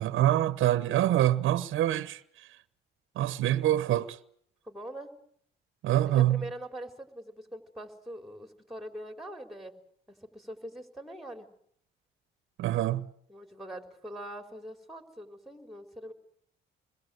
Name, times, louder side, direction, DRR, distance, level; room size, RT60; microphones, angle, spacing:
voice 1, 0.0-2.2 3.2-4.2 5.8-6.4 12.6-13.1, right 13 dB, 80° right, 1.0 m, -25 dB
voice 2, 4.6-5.1 6.1-9.7 10.1-11.5 13.3-16.1, right 1 dB, ahead, 4.4 m, -43 dB
27.5 x 21.5 x 7.9 m
cardioid pair, 90°, 20 cm